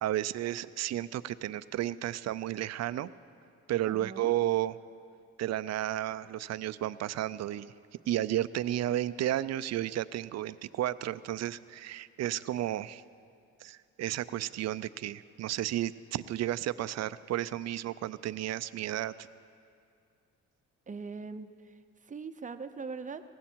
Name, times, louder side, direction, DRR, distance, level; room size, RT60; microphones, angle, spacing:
voice 1, 0.0-3.1 3.7-4.7 5.4-7.7 8.1-13.0 13.6-19.3, right 13 dB, 60° right, 16 dB, 0.5 m, -32 dB
voice 2, 3.9-4.3 20.9-21.8 22.0-23.2, right 4 dB, 25° right, 10 dB, 0.7 m, -41 dB
17.5 x 15.5 x 4.5 m, 2.4 s
cardioid pair, 90°, 30 cm